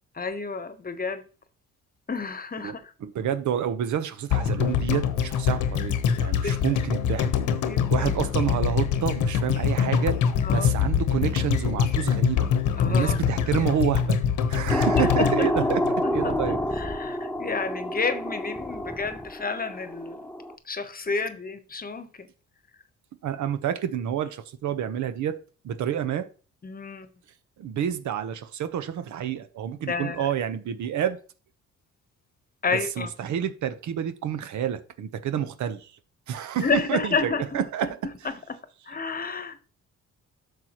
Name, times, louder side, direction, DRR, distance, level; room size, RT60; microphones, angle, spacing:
voice 1, 0.2-1.2 2.1-2.9 6.4-6.6 7.7-8.1 10.4-10.9 12.8-13.2 14.7-20.2 20.7-22.3 26.6-27.1 29.9-30.3 32.6-33.1 36.6-37.9 38.2-38.6 38.9-39.6, left 4 dB, 30° left, 1.1 m, -30 dB
voice 2, 2.6-7.3 7.9-10.2 10.5-12.5 12.9-16.6 23.2-25.3 25.6-26.3 27.6-31.2 32.7-35.9 36.3-38.0, right 9 dB, 75° right, 1.0 m, -29 dB
sound 1, 4.3-16.5 16.8-16.9, left 8 dB, 80° left, 1.1 m, -24 dB
sound 2, 14.7-20.5, left 1 dB, 5° left, 0.7 m, -28 dB
10.5 x 6.7 x 3.0 m
cardioid pair, 90°, 30 cm